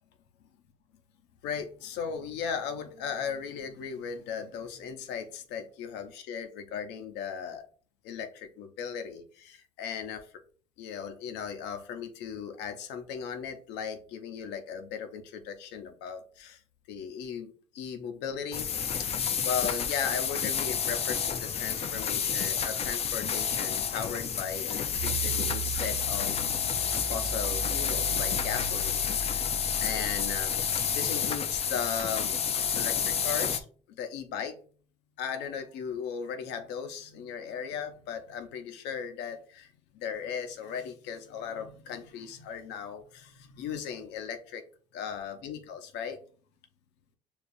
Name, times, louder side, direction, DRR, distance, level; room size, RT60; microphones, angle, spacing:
voice 1, 1.4-7.6 8.0-10.3 10.8-16.6 16.9-18.7 19.0-19.1 19.4-26.4 27.1-29.5 29.8-30.6 30.8-32.4 32.8-34.5 35.2-44.6 44.9-46.2, left 7 dB, 90° left, 7 dB, 0.7 m, -37 dB
sound 1, 18.5-33.6, left 7 dB, 35° left, 0.4 m, -30 dB
sound 2, 24.9-31.2, right 3 dB, 75° right, 0.9 m, -39 dB
6.8 x 2.4 x 2.6 m, 0.44 s
cardioid pair, 110°, 17 cm